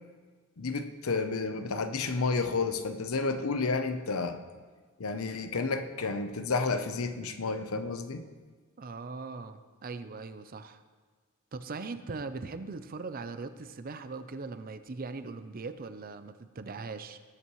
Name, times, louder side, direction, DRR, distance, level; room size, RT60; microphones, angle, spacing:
voice 1, 0.6-4.4 5.0-8.2, left 4 dB, 75° left, 9 dB, 0.8 m, -31 dB
voice 2, 8.8-10.8 11.5-17.2, right 4 dB, 40° right, 11 dB, 0.5 m, -40 dB
19.0 x 8.3 x 3.1 m, 1.5 s
head